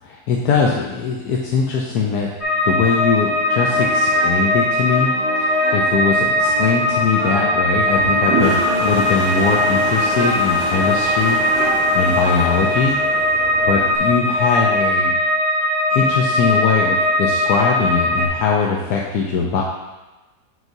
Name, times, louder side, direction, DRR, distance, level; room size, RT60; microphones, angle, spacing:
voice 1, 0.0-2.3 2.6-5.1 5.4-11.4 11.9-13.0 13.7-15.1 15.9-19.6, left 5 dB, 70° left, -2 dB, 1.1 m, -21 dB
sound 1, 2.4-18.3, left 1 dB, 45° left, 1.3 m, -19 dB
sound 2, 3.3-12.8, right 1 dB, 90° right, 1.9 m, -31 dB
Toilet flush, 7.8-14.0, right 3 dB, 70° right, 1.5 m, -28 dB
7.9 x 5.9 x 2.7 m, 1.1 s
omnidirectional pair, 1.9 m